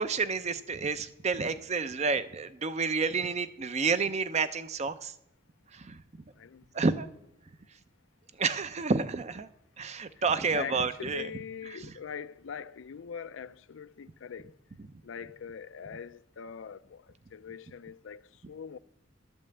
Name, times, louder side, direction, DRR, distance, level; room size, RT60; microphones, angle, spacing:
voice 1, 0.0-5.1 5.7-6.0 6.7-7.1 8.4-9.5 9.8-11.3 11.8-11.9, right 4 dB, 35° right, 0.5 m, -30 dB
voice 2, 6.3-6.8 10.5-14.5 15.0-18.8, left 7 dB, 75° left, 0.4 m, -42 dB
12.0 x 5.4 x 7.8 m
head